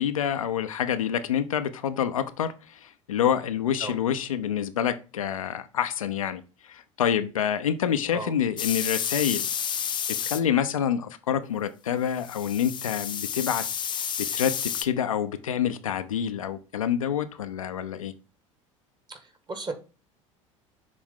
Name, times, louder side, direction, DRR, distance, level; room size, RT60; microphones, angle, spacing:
voice 1, 0.0-9.5 10.2-13.6 13.9-18.1, left 9 dB, 80° left, 9 dB, 0.6 m, -27 dB
sound 1, 8.6-10.4 12.2-14.8, left 8 dB, 25° left, 0.6 m, -30 dB
voice 2, 19.1-19.7, right 3 dB, 25° right, 8 dB, 1.5 m, -35 dB
7.3 x 3.5 x 3.7 m, 0.33 s
figure-of-eight pair, 70°, 17 cm